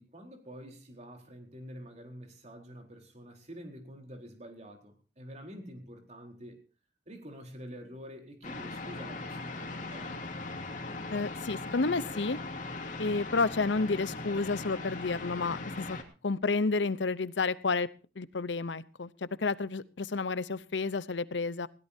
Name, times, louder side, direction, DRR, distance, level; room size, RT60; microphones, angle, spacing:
voice 1, 0.0-6.6 7.1-10.5, equal, 40° right, 3 dB, 4.1 m, -47 dB
sound 1, 8.4-16.0, left 2 dB, 45° left, 2.8 m, -39 dB
voice 2, 11.1-12.4 13.0-16.0 16.2-17.9 18.2-21.7, left 3 dB, 90° left, 17 dB, 0.8 m, -30 dB
20.5 x 17.0 x 2.8 m, 0.35 s
head